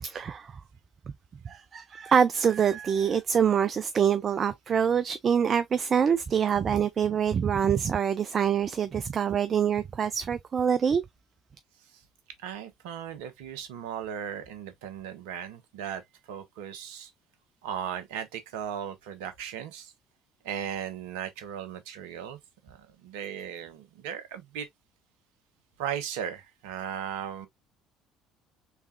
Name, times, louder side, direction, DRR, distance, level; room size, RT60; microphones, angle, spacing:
voice 1, 0.0-0.5 1.5-11.0, right 7 dB, 35° right, 0.3 m, -25 dB
voice 2, 12.4-16.0 16.3-17.1 17.6-19.9 20.4-22.4 22.6-24.7 25.8-27.5, right 9 dB, 65° right, 0.8 m, -37 dB
4.6 x 3.4 x 2.2 m
figure-of-eight pair, 55°, 0 cm